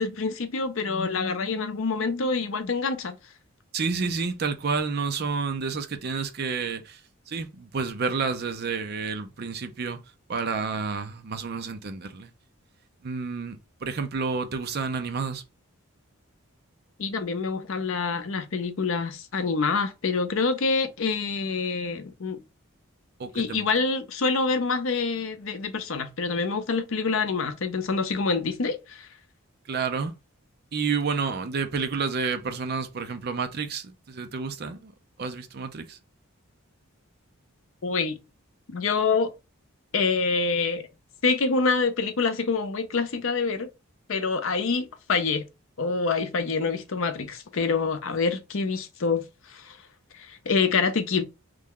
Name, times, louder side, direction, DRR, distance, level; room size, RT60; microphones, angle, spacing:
voice 1, 0.0-3.1 17.0-22.4 23.3-29.1 37.8-38.2 38.7-39.3 39.9-40.8 41.2-43.7 44.1-45.4 45.8-49.2 49.5-49.8 50.1-51.2, left 4 dB, 65° left, 0.5 m, -26 dB
voice 2, 3.7-7.0 7.3-10.0 10.3-12.3 13.0-15.4 23.2-23.7 29.7-30.1 30.7-34.9 35.2-36.0, right 5 dB, 45° right, 0.5 m, -30 dB
3.2 x 2.2 x 3.6 m
head